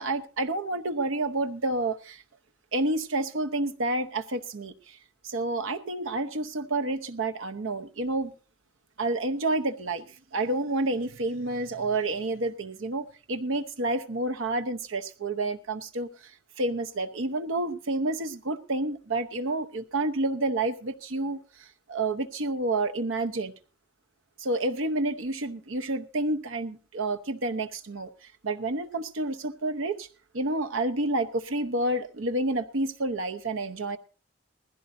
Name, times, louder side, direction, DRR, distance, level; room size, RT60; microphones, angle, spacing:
voice 1, 0.0-2.2 2.7-5.0 5.2-8.3 9.0-16.3 16.6-23.5 24.4-28.1 28.4-30.1 30.3-34.0, right 2 dB, 85° right, 0.9 m, -29 dB
19.5 x 15.5 x 2.7 m
head